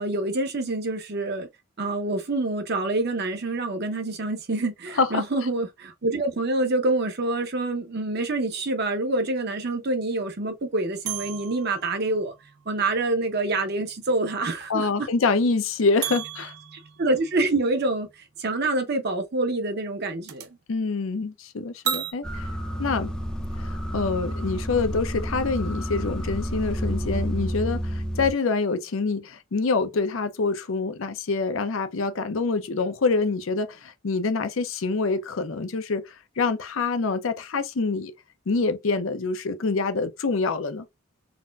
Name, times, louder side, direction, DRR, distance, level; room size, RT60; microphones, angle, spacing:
voice 1, 0.0-1.5 1.8-12.3 12.7-15.1 17.0-18.1 18.4-20.4, right 2 dB, 50° right, 0.7 m, -26 dB
sound 1, 11.0-14.4 14.7-14.8 16.0-17.8 20.3-20.5 21.8-22.1, right 9 dB, 85° right, 0.6 m, -35 dB
voice 2, 14.7-16.5 20.7-22.4 22.8-23.1 23.6-38.1 38.5-40.9, left 4 dB, 65° left, 0.5 m, -26 dB
sound 2, 22.2-28.3, equal, 5° left, 0.4 m, -30 dB
4.0 x 2.1 x 2.2 m
head